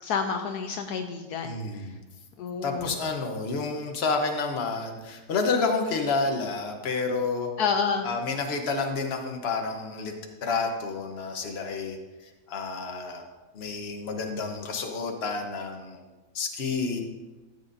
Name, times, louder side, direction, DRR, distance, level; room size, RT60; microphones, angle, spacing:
voice 1, 0.0-1.9 2.4-3.0 7.6-8.1, left 5 dB, 75° left, 5 dB, 1.1 m, -29 dB
voice 2, 1.4-2.0 2.6-7.5 8.0-10.1 10.4-12.0 12.2-13.2 13.5-16.0 16.3-17.0, left 4 dB, 40° left, 3 dB, 1.2 m, -29 dB
13.5 x 8.6 x 2.7 m, 1.2 s
omnidirectional pair, 1.8 m